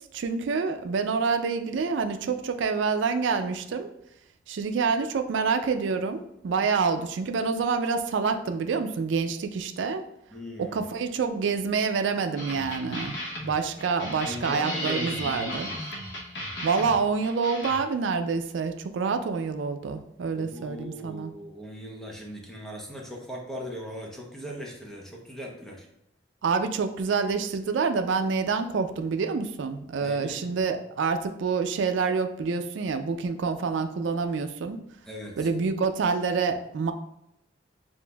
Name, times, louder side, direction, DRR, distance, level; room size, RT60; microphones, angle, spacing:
voice 1, 0.1-3.9 4.5-10.0 10.6-13.2 13.4-15.7 16.6-21.3 26.4-34.8 35.4-36.9, right 5 dB, 85° right, 8 dB, 0.4 m, -27 dB
voice 2, 10.3-10.8 14.3-15.8 20.3-25.9 28.6-28.7 30.0-30.5 35.1-35.5, equal, 5° left, -1 dB, 0.7 m, -39 dB
sound 1, 12.4-17.8, left 1 dB, 75° left, 0.9 m, -36 dB
6.9 x 2.5 x 2.2 m, 0.80 s
head